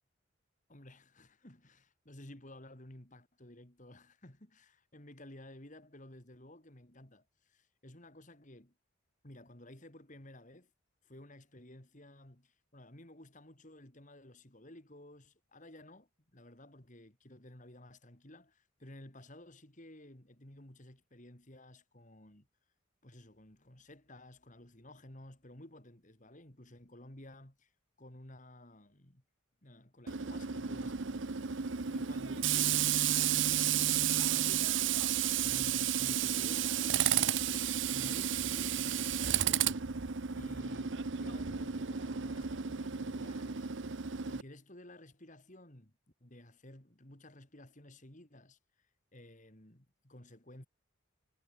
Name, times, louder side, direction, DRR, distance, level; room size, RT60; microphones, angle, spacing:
voice 1, 0.7-8.7 9.2-10.7 11.0-22.5 23.0-27.7 28.0-29.2 29.6-31.2 31.9-34.7 35.4-39.7 40.3-43.7 44.3-45.9 46.2-50.7, left 1 dB, 35° left, 2.8 m, -54 dB
Tools, 30.1-44.4, right 9 dB, 60° right, 0.8 m, -32 dB
head